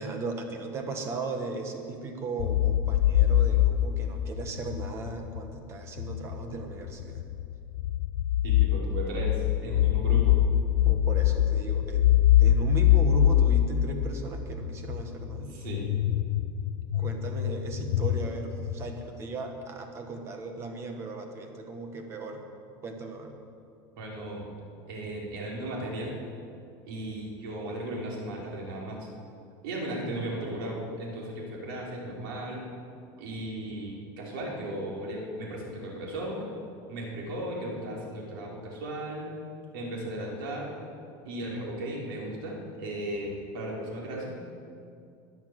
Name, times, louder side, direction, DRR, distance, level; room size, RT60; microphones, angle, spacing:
voice 1, 0.0-7.3 10.8-12.1 12.4-15.5 16.9-22.4 22.8-23.3, right 3 dB, 25° right, 4 dB, 1.5 m, -37 dB
sound 1, 2.4-5.5 6.0-19.0, left 12 dB, 90° left, 0.5 m, -24 dB
voice 2, 8.4-10.4 15.5-15.8 24.0-24.4 24.9-26.1 26.9-29.1 29.6-32.6 33.2-36.5 36.9-39.3 39.7-40.7 41.2-44.3, right 1 dB, 80° right, -3 dB, 4.7 m, -36 dB
22.0 x 7.4 x 7.7 m, 2.4 s
cardioid pair, 175°, 11 cm